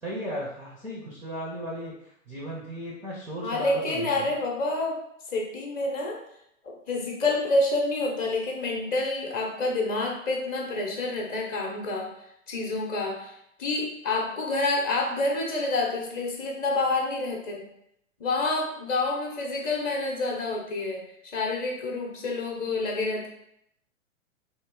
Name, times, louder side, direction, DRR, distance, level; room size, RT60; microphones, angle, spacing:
voice 1, 0.0-4.4, equal, 5° right, -5 dB, 0.5 m, -36 dB
voice 2, 3.4-5.0 5.3-6.2 6.6-12.1 12.5-13.3 13.6-17.7 18.2-21.0 21.3-23.3, left 2 dB, 20° left, 0 dB, 0.8 m, -28 dB
3.6 x 3.0 x 4.4 m, 0.77 s
figure-of-eight pair, 105°, 39 cm